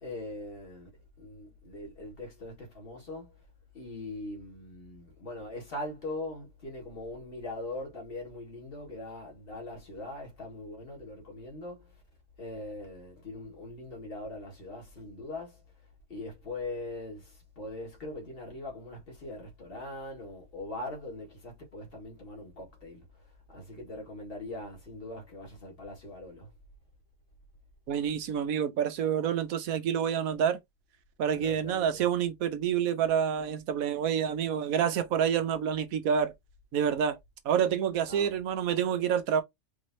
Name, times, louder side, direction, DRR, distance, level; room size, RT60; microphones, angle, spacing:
voice 1, 0.0-0.9 1.2-3.3 3.7-11.9 12.4-15.6 16.1-23.1 23.5-26.5 31.3-32.0 38.1-38.4, left 2 dB, 45° left, 2.1 m, -41 dB
voice 2, 27.9-30.6 31.2-36.3 36.7-37.2 37.4-39.4, right 8 dB, 90° right, 1.2 m, -28 dB
4.9 x 3.2 x 2.7 m
omnidirectional pair, 1.4 m